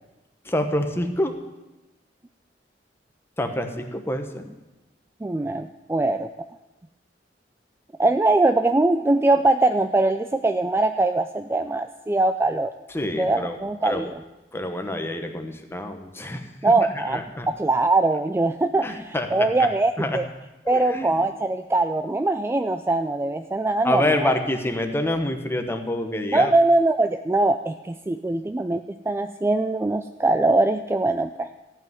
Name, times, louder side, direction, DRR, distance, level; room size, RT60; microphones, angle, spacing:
voice 1, 0.4-1.3 3.4-4.5 12.9-13.6 13.8-14.1 14.5-17.5 18.8-19.7 20.0-20.2 20.6-21.2 23.8-26.5, left 1 dB, 15° left, 5 dB, 1.1 m, -27 dB
voice 2, 5.2-6.3 8.0-12.7 13.2-14.2 16.6-17.2 17.5-20.3 20.7-24.3 26.3-31.5, right 2 dB, 15° right, 8 dB, 0.4 m, -22 dB
15.0 x 5.6 x 9.3 m, 1.0 s
head